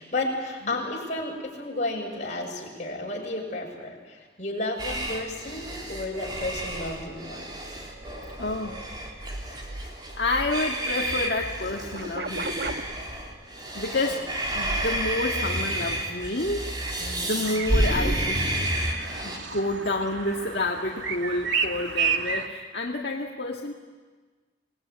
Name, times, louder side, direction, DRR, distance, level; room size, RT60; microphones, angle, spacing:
voice 1, 0.0-7.6 14.1-14.2 17.0-17.3, left 2 dB, 40° left, -1 dB, 6.7 m, -32 dB
sound 1, 4.8-19.4, right 1 dB, 25° right, 3.7 m, -30 dB
Swamp chaos, 7.0-11.2 11.6-12.8 14.5-15.1 15.5-15.6, right 2 dB, 55° right, 1.4 m, -38 dB
voice 2, 8.4-8.8 9.7-9.9 10.2-12.8 13.7-14.3 14.5-16.6 17.2-18.5 19.2-23.7, left 2 dB, 55° left, 0 dB, 1.9 m, -29 dB
sound 2, 17.4-22.5, right 5 dB, 80° right, 2.1 m, -31 dB
27.5 x 20.0 x 9.5 m, 1.4 s
head